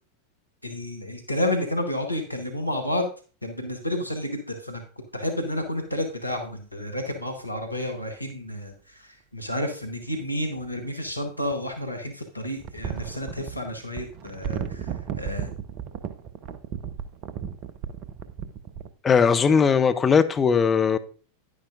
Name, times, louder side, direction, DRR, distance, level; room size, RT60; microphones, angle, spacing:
voice 1, 0.6-3.1 3.4-4.8 5.1-15.5, left 1 dB, 90° left, 1.1 m, -30 dB
sound 1, 8.3-8.4 10.6-11.7 12.6-18.9, right 8 dB, 40° right, 0.7 m, -35 dB
voice 2, 19.0-21.0, left 6 dB, 20° left, 0.6 m, -19 dB
10.0 x 9.8 x 2.5 m
figure-of-eight pair, 90°, 0 cm